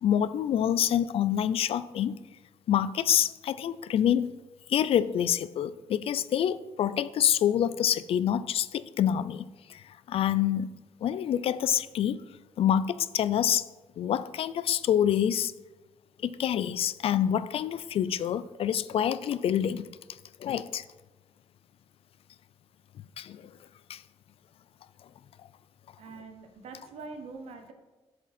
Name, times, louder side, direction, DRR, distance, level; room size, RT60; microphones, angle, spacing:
voice 1, 0.0-2.2 2.7-4.4 4.7-10.7 11.0-12.2 12.6-13.6 14.0-15.5 16.2-19.9 20.4-20.8 23.2-23.5 23.9-24.0, left 10 dB, 60° left, 15 dB, 0.4 m, -27 dB
voice 2, 26.0-27.7, right 4 dB, 75° right, 6 dB, 1.2 m, -44 dB
7.7 x 7.4 x 4.3 m, 1.2 s
cardioid pair, 120°, 11 cm